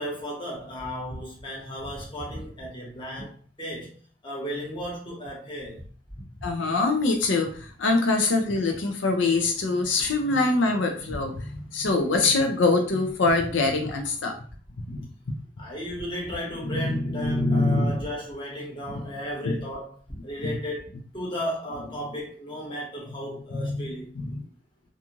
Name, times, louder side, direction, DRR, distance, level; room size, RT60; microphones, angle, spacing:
voice 1, 0.0-4.0 4.2-5.8 15.6-24.1, equal, 25° left, -3 dB, 1.0 m, -35 dB
voice 2, 6.4-14.3 14.9-15.0 17.1-17.9 19.4-19.6 24.3-24.4, left 3 dB, 85° left, 4 dB, 0.5 m, -24 dB
2.5 x 2.3 x 2.9 m, 0.44 s
head